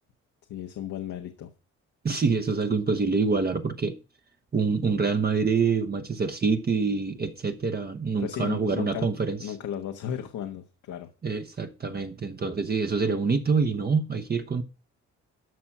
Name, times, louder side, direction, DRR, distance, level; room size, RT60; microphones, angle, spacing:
voice 1, 0.5-1.5 8.2-9.1 9.4-11.1, left 9 dB, 75° left, 1.3 m, -35 dB
voice 2, 2.0-4.0 4.5-9.4 11.2-14.6, right 4 dB, 30° right, 1.0 m, -26 dB
12.5 x 5.9 x 6.0 m
cardioid pair, 90°, 30 cm